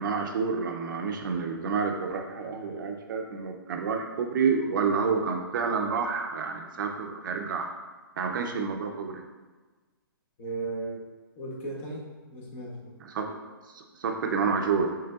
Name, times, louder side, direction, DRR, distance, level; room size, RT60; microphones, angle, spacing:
voice 1, 0.0-7.7 8.2-9.2 13.0-13.4 13.7-15.0, right 5 dB, 55° right, 4 dB, 0.5 m, -29 dB
voice 2, 10.4-11.0 11.4-12.9, right 2 dB, 35° left, -2 dB, 0.9 m, -36 dB
5.9 x 3.2 x 2.4 m, 1.3 s
hypercardioid pair, 160°, 13 cm